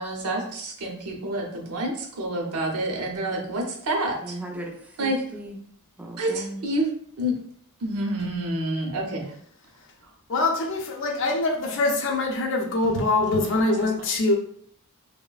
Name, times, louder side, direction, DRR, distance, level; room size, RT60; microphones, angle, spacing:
voice 1, 0.0-4.4 5.0-5.2 6.2-6.9 7.2-7.3 7.8-9.2, right 1 dB, 80° right, 1 dB, 0.6 m, -28 dB
voice 2, 4.2-5.6 6.0-6.6, right 1 dB, 5° right, 0 dB, 0.4 m, -37 dB
voice 3, 10.3-14.4, left 2 dB, 55° left, 2 dB, 0.5 m, -23 dB
3.1 x 2.1 x 2.3 m, 0.63 s
head